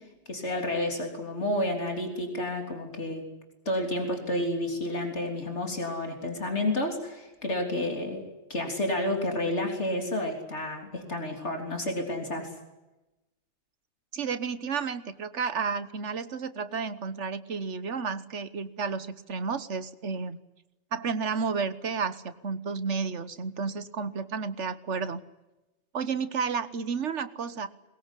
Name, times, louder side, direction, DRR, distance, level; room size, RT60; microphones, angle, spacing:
voice 1, 0.3-3.3 3.7-8.2 8.5-12.5, left 1 dB, 75° left, 3 dB, 3.8 m, -30 dB
voice 2, 14.1-20.4 20.9-25.2 25.9-27.7, right 5 dB, 80° right, 13 dB, 1.6 m, -31 dB
22.0 x 21.5 x 10.0 m, 1.0 s
omnidirectional pair, 1.2 m